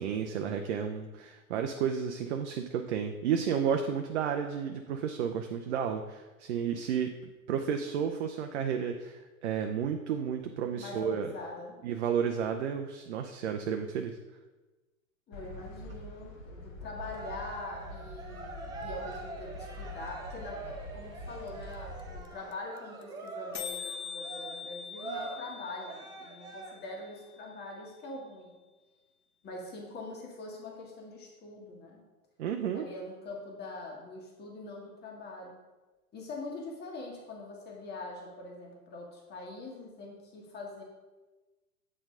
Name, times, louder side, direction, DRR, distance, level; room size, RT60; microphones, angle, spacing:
voice 1, 0.0-7.1 7.5-11.3 11.8-14.2 32.4-32.9, right 7 dB, 50° right, 5 dB, 0.6 m, -32 dB
voice 2, 10.7-11.8 15.3-28.6 29.4-32.0 32.7-35.5 36.1-40.8, left 2 dB, 25° left, -1 dB, 1.7 m, -43 dB
sound 1, 15.3-22.2, left 2 dB, 65° left, 1.5 m, -45 dB
Cheering, 16.9-27.0, right 3 dB, 10° right, 0.4 m, -44 dB
sound 2, 21.5-21.6 21.7-21.8 22.0-22.3 22.5-22.6 22.8-23.0 23.3-23.4 23.5-27.5, left 7 dB, 80° left, 0.8 m, -43 dB
8.5 x 4.4 x 3.8 m, 1.2 s
figure-of-eight pair, 95°, 43 cm